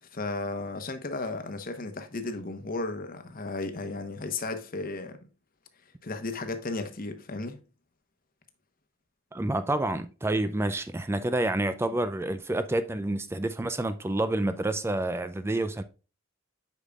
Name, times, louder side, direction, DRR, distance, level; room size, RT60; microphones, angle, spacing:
voice 1, 0.1-5.2 6.0-7.6, left 3 dB, 45° left, 1.0 m, -34 dB
voice 2, 9.3-15.8, right 2 dB, 10° right, 0.4 m, -28 dB
8.3 x 5.7 x 2.3 m
head